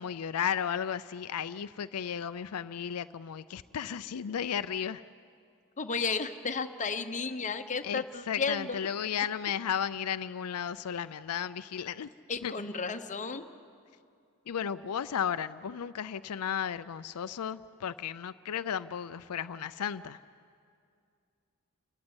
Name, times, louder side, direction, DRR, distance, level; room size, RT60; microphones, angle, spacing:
voice 1, 0.0-5.0 7.8-12.1 12.4-12.5 14.5-20.2, left 8 dB, 85° left, 12 dB, 0.5 m, -34 dB
voice 2, 5.8-8.8 12.3-13.5, left 4 dB, 35° left, 7 dB, 1.0 m, -33 dB
29.5 x 14.0 x 9.7 m, 2.4 s
head